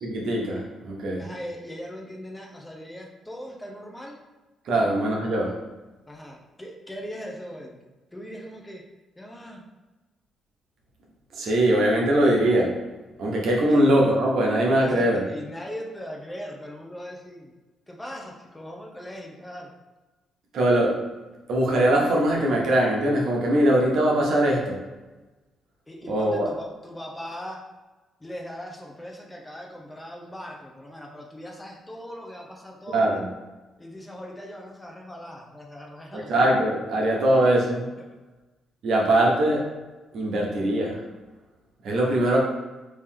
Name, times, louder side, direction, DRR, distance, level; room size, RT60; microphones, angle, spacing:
voice 1, 0.0-1.3 4.6-5.6 11.3-12.8 13.2-15.2 20.5-21.0 21.5-24.8 26.1-26.5 32.9-33.3 36.1-37.9 38.8-39.7 40.1-41.0 41.8-42.4, right 1 dB, 70° right, -2 dB, 0.9 m, -21 dB
voice 2, 1.1-4.2 4.7-4.8 6.1-7.8 8.1-8.8 9.2-9.6 13.7-13.8 14.8-17.5 17.9-19.7 25.9-27.6 28.2-33.1 33.8-36.3, equal, 15° left, 0 dB, 0.7 m, -39 dB
3.3 x 2.7 x 3.7 m, 1.2 s
cardioid pair, 90°, 0 cm